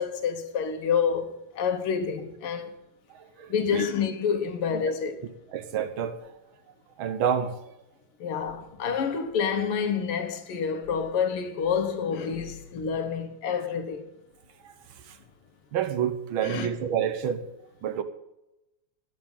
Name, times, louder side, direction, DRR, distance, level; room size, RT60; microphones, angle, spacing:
voice 1, 0.0-2.7 3.5-5.2 8.2-14.1 16.4-16.7, left 6 dB, 90° left, 2.0 m, -28 dB
voice 2, 3.1-3.9 4.7-4.9 5.5-6.3 7.0-7.7 14.6-14.7 15.0-15.2 15.7-17.5 17.8-18.0, right 8 dB, 70° right, 1.7 m, -29 dB
10.0 x 7.5 x 8.8 m
omnidirectional pair, 2.4 m